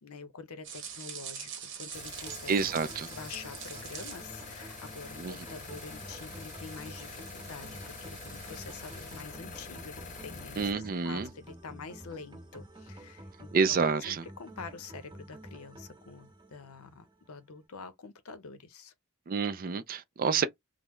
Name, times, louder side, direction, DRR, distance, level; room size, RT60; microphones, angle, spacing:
voice 1, 0.0-2.8 3.1-18.9 20.2-20.5, left 5 dB, 85° left, 0.6 m, -47 dB
sound 1, 0.6-9.2, right 7 dB, 60° right, 1.0 m, -46 dB
sound 2, 1.9-10.7, left 4 dB, 35° left, 0.7 m, -46 dB
sound 3, 2.3-17.3, right 1 dB, 20° right, 1.1 m, -50 dB
voice 2, 2.5-3.1 5.2-5.4 10.6-11.3 13.5-14.2 19.3-20.5, right 5 dB, 40° right, 0.4 m, -28 dB
3.4 x 2.0 x 3.0 m
head